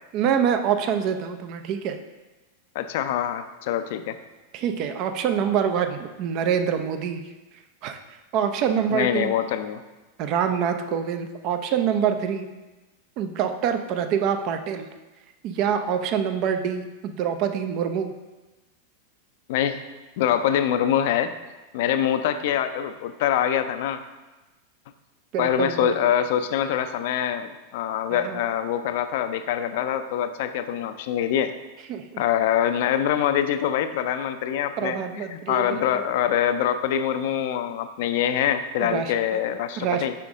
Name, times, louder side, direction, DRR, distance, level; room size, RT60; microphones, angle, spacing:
voice 1, 0.1-2.0 4.5-7.2 7.8-8.0 8.3-9.3 10.2-12.5 13.2-14.9 15.4-18.2 25.3-25.9 28.1-28.5 31.9-32.0 34.8-36.0 38.8-39.4 39.8-40.1, right 8 dB, 50° right, 8 dB, 0.6 m, -25 dB
voice 2, 2.7-4.2 8.9-9.8 19.5-19.8 20.2-21.3 21.7-24.0 25.4-31.5 32.2-40.1, left 10 dB, 60° left, 9 dB, 0.5 m, -24 dB
5.6 x 5.1 x 3.6 m, 1.1 s
hypercardioid pair, 100°, 0 cm